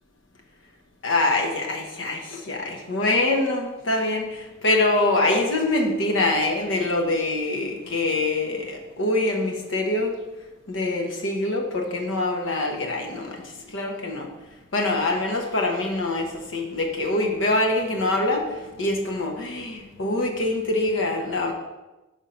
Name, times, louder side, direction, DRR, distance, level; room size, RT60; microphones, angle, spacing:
voice 1, 1.0-10.2 10.7-13.4 13.7-14.3 14.7-18.5 18.8-21.5, left 2 dB, 75° left, 2 dB, 0.9 m, -24 dB
5.1 x 3.6 x 5.6 m, 1.1 s
head